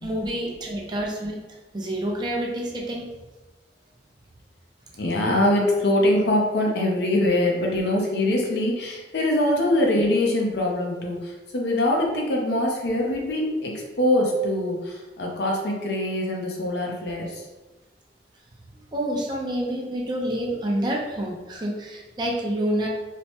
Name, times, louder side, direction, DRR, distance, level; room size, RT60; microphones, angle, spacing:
voice 1, 0.0-1.4 1.7-3.0 18.9-22.9, right 1 dB, 25° right, -2 dB, 0.4 m, -28 dB
voice 2, 5.0-17.4, left 1 dB, 65° left, -1 dB, 0.6 m, -23 dB
3.2 x 2.1 x 2.8 m, 1.2 s
head